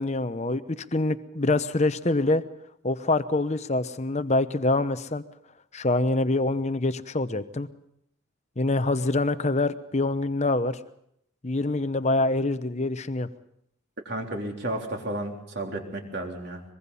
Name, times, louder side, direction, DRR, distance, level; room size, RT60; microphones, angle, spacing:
voice 1, 0.0-2.4 2.8-5.2 5.7-7.7 8.6-10.8 11.4-13.3, left 2 dB, 30° left, 12 dB, 0.9 m, -25 dB
voice 2, 14.1-16.6, right 1 dB, 50° right, 2 dB, 3.5 m, -32 dB
23.5 x 22.0 x 5.6 m, 0.74 s
head